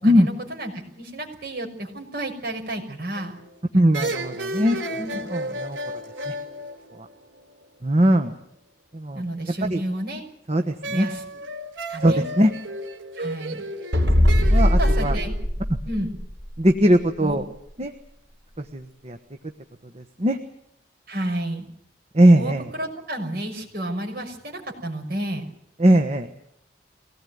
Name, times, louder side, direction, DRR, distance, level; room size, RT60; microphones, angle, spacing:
voice 1, 0.0-3.3 4.6-5.2 9.1-10.3 10.9-11.4 11.9-12.2 13.2-13.6 14.8-15.3 15.8-16.1 17.2-17.4 21.1-21.7 22.3-25.5, right 1 dB, 55° right, 2 dB, 6.1 m, -31 dB
sound 1, 3.2-3.5 3.9-7.6 10.8-15.2, right 1 dB, 90° right, 4.3 m, -33 dB
voice 2, 3.7-4.7 5.3-5.8 6.3-6.4 7.8-8.3 8.9-9.2 9.7-9.8 10.5-11.1 12.0-12.5 14.5-15.1 16.6-17.4 17.8-17.9 18.7-19.2 20.2-20.4 22.1-22.6 25.8-26.3, equal, 35° right, 5 dB, 1.3 m, -19 dB
sound 2, 13.9-16.6, left 1 dB, 70° right, 5.9 m, -20 dB
23.5 x 18.5 x 9.4 m, 0.75 s
head